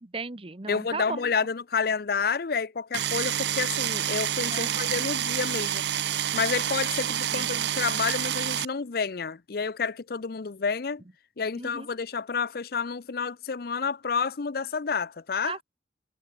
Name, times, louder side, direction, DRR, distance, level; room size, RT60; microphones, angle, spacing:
voice 1, 0.0-1.3 4.5-5.0 7.3-7.6 11.5-11.9 15.4-15.6, right 4 dB, 30° right, 0.9 m, -37 dB
voice 2, 0.7-5.8 6.3-11.0 11.4-15.6, left 5 dB, 55° left, 0.5 m, -29 dB
sound 1, 2.9-8.6, right 10 dB, 70° right, 0.7 m, -28 dB
head